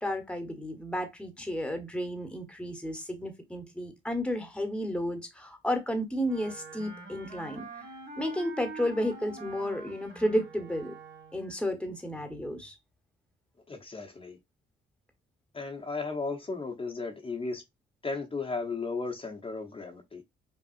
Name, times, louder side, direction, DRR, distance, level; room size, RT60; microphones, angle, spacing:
voice 1, 0.0-7.7 8.2-11.0 11.3-12.7, equal, 5° left, 1.1 m, -32 dB
Wind instrument woodwind instrument, 6.2-11.6, right 2 dB, 70° right, 2.2 m, -45 dB
voice 2, 13.7-14.4 15.5-17.6 18.0-20.2, left 4 dB, 30° left, 1.0 m, -35 dB
5.5 x 2.3 x 2.5 m
cardioid pair, 90°, 20 cm